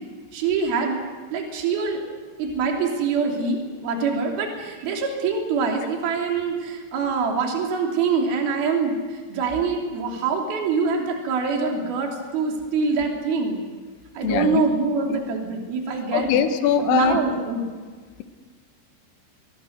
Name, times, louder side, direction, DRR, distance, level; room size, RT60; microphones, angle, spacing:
voice 1, 0.3-1.0 1.3-2.0 2.4-13.6 14.1-16.3 16.8-17.6, right 4 dB, 55° right, 1 dB, 4.7 m, -24 dB
voice 2, 14.2-14.6 16.1-17.2, left 9 dB, 75° left, 8 dB, 3.6 m, -21 dB
25.5 x 22.0 x 6.6 m, 1.5 s
omnidirectional pair, 5.5 m